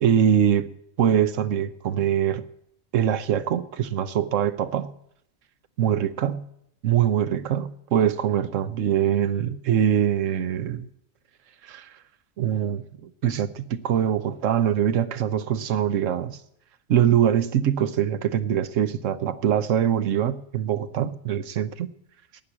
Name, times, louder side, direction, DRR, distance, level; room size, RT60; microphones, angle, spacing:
voice 1, 0.0-0.7 1.0-2.4 2.9-4.9 5.8-6.4 6.8-10.9 11.6-11.9 12.4-16.4 16.9-21.9, right 9 dB, 85° right, 13 dB, 1.2 m, -23 dB
11.0 x 9.7 x 8.5 m, 0.76 s
omnidirectional pair, 1.3 m